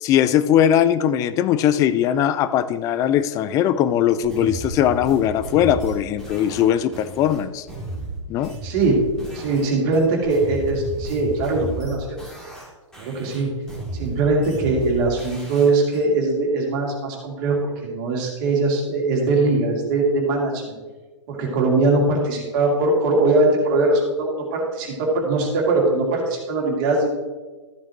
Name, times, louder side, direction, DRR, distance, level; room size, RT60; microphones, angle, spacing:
voice 1, 0.0-7.7 8.3-8.6, left 10 dB, 20° left, 14 dB, 0.4 m, -20 dB
sound 1, 4.2-9.7 9.9-12.7 12.9-16.0, right 2 dB, 5° left, 2.8 m, -33 dB
voice 2, 8.6-9.0 9.3-12.1 13.0-13.5 13.9-20.8 21.3-27.1, right 3 dB, 40° right, -1 dB, 2.9 m, -21 dB
14.0 x 7.5 x 3.0 m, 1.3 s
figure-of-eight pair, 110°, 16 cm